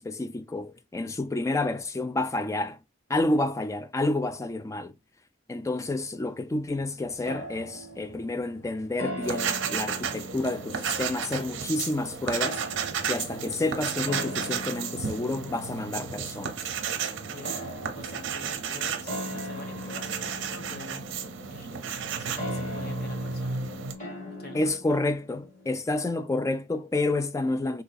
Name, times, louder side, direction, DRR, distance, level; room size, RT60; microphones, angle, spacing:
voice 1, 0.0-2.8 3.1-4.9 5.5-12.6 13.1-16.5 24.5-27.8, left 2 dB, 15° left, 0.3 m, -29 dB
sound 1, 6.7-19.8, right 1 dB, 75° left, 1.2 m, -55 dB
sound 2, 7.2-25.7, left 1 dB, 40° left, 1.4 m, -41 dB
sound 3, 9.2-23.9, right 6 dB, 70° right, 0.6 m, -33 dB
voice 2, 17.2-21.1 21.5-23.7 24.4-25.0, left 2 dB, 55° left, 1.0 m, -46 dB
3.8 x 2.6 x 2.3 m
head